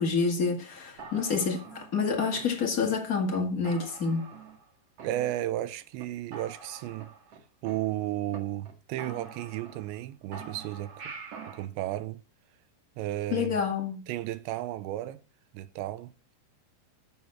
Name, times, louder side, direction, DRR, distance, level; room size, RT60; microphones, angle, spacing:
voice 1, 0.0-4.3 13.3-14.0, left 5 dB, 45° left, 1.1 m, -28 dB
sound 1, 1.0-2.9 3.3-3.4 3.6-4.7 5.0-5.7 6.0-6.1 6.3-8.4 8.6-8.7 9.0-10.0 10.3-11.7, right 5 dB, 50° right, 2.2 m, -45 dB
voice 2, 5.0-7.1 7.6-11.1 11.5-12.2 13.0-13.6 14.1-15.2 15.5-16.1, right 14 dB, 90° right, 3.1 m, -33 dB
9.1 x 7.1 x 8.7 m
omnidirectional pair, 5.0 m